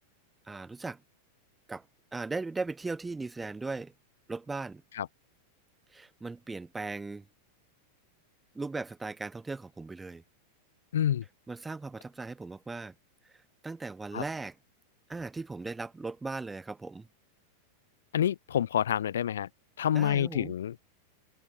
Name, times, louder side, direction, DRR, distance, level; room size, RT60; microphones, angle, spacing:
voice 1, 0.4-1.0 1.7-1.9 2.1-3.9 4.3-4.8 5.9-7.3 8.5-10.2 11.5-12.9 13.3-13.4 13.6-14.5 15.1-17.1 19.9-20.5, right 3 dB, 10° right, 0.4 m, -38 dB
voice 2, 10.9-11.2 14.1-14.2 18.1-19.5 19.8-20.8, left 10 dB, 65° left, 0.4 m, -28 dB
open air
figure-of-eight pair, 90°, 0 cm